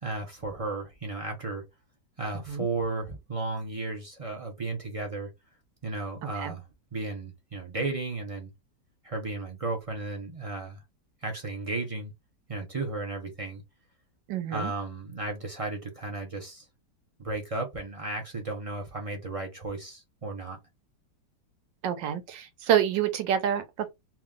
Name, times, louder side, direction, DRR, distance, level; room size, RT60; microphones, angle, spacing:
voice 1, 0.0-1.6 2.2-5.3 5.8-6.6 6.9-8.5 9.0-10.8 11.2-12.1 12.5-13.6 14.5-16.6 17.2-20.6, right 2 dB, 45° right, 0.4 m, -34 dB
voice 2, 6.2-6.5 14.3-14.7 21.8-23.9, right 9 dB, 85° right, 1.5 m, -28 dB
2.9 x 2.9 x 3.6 m
omnidirectional pair, 1.9 m